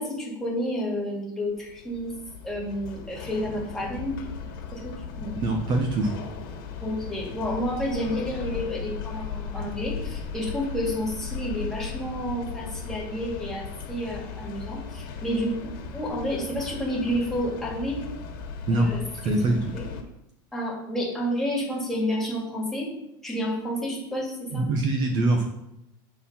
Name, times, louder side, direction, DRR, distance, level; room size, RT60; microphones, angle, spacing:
voice 1, 0.0-2.1 2.4-4.2 4.7-5.4 6.8-15.5 15.9-18.0 18.7-19.4 19.7-19.8 20.5-22.9 23.2-24.7, equal, 5° left, -4 dB, 2.2 m, -30 dB
sound 1, 1.5-20.0, left 5 dB, 70° left, 1.6 m, -37 dB
voice 2, 5.4-6.1 18.7-18.9 19.2-19.6 24.5-25.4, right 2 dB, 40° right, 3 dB, 0.9 m, -23 dB
8.1 x 4.3 x 5.6 m, 0.83 s
supercardioid pair, 145°, 12 cm